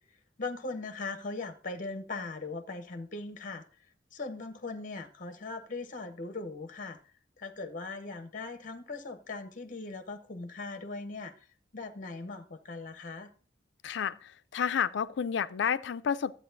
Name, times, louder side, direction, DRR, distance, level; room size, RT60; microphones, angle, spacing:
voice 1, 0.4-3.6 4.1-7.0 7.4-11.3 11.7-13.3, left 3 dB, 45° left, 0.8 m, -39 dB
voice 2, 13.8-16.3, left 7 dB, 65° left, 0.4 m, -30 dB
11.0 x 8.5 x 2.6 m
head